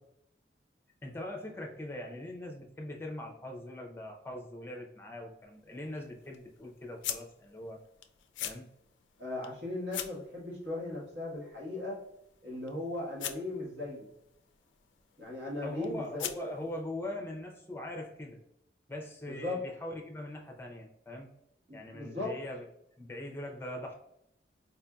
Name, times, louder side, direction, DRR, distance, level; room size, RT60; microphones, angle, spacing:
voice 1, 1.0-7.8 8.4-8.7 15.6-18.4 18.9-21.3 21.7-22.6 23.0-23.9, left 1 dB, 10° left, 1 dB, 0.5 m, -41 dB
sound 1, 5.2-16.8, left 11 dB, 80° left, 0.3 m, -45 dB
voice 2, 9.2-12.0 12.4-14.1 15.2-16.6 19.3-19.6 21.7-22.4, left 2 dB, 65° right, -3 dB, 1.4 m, -38 dB
4.3 x 2.6 x 2.3 m, 0.81 s
head